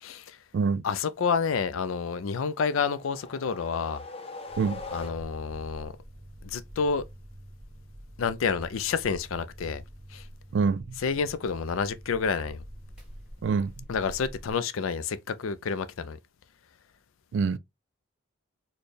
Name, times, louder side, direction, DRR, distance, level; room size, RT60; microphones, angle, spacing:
voice 1, 0.0-0.4 0.8-4.0 4.9-5.9 6.4-7.0 8.2-9.8 10.1-10.3 11.0-12.6 13.9-16.2, left 5 dB, 85° left, 0.4 m, -29 dB
sound 1, 2.5-5.6, left 3 dB, 30° left, 0.4 m, -42 dB
sound 2, 4.5-14.5, equal, 5° right, 1.2 m, -47 dB
voice 2, 10.5-11.0 13.4-13.8 17.3-17.6, right 5 dB, 60° right, 0.3 m, -26 dB
4.2 x 2.2 x 3.2 m
head